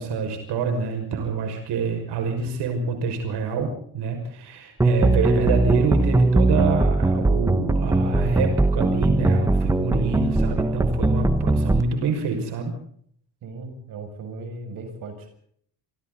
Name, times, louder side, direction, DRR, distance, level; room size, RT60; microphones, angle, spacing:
voice 1, 0.0-12.7, right 4 dB, 85° right, 4 dB, 6.1 m, -26 dB
sound 1, 4.8-11.8, right 2 dB, 10° right, 0.9 m, -20 dB
voice 2, 13.4-15.3, right 3 dB, 60° right, 4 dB, 7.2 m, -37 dB
29.0 x 25.5 x 4.1 m, 0.66 s
cardioid pair, 180°, 39 cm